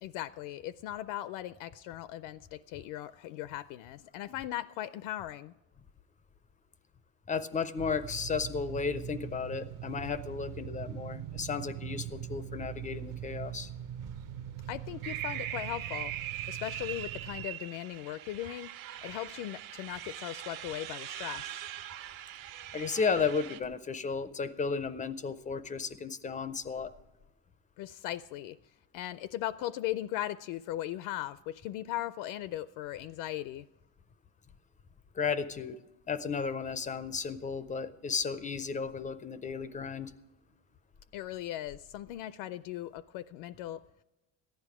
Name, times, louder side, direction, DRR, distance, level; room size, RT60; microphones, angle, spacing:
voice 1, 0.0-5.5 14.7-16.1 16.5-21.6 27.8-28.6 28.9-33.7 41.1-43.8, left 14 dB, 70° left, 16 dB, 0.5 m, -38 dB
voice 2, 7.3-13.7 22.7-26.9 35.1-35.8 36.1-40.1, left 5 dB, 20° left, 14 dB, 0.4 m, -34 dB
sound 1, 7.8-17.5, right 10 dB, 40° right, 0.6 m, -42 dB
sound 2, 15.0-23.6, right 12 dB, 70° right, 1.2 m, -41 dB
14.5 x 10.5 x 4.8 m, 1.1 s
cardioid pair, 125°, 48 cm